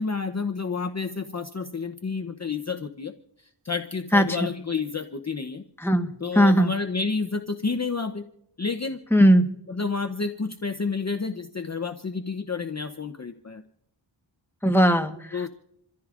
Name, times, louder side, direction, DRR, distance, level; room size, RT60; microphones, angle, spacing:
voice 1, 0.0-3.1 3.6-5.6 6.2-8.2 8.6-9.0 9.7-13.6 15.3-15.5, left 4 dB, 35° left, 8 dB, 0.8 m, -30 dB
voice 2, 4.1-4.5 5.8-6.1 6.3-6.7 9.1-9.4 14.6-15.4, equal, 5° left, 6 dB, 1.2 m, -18 dB
27.5 x 14.0 x 2.5 m, 0.77 s
wide cardioid pair, 55°, 47 cm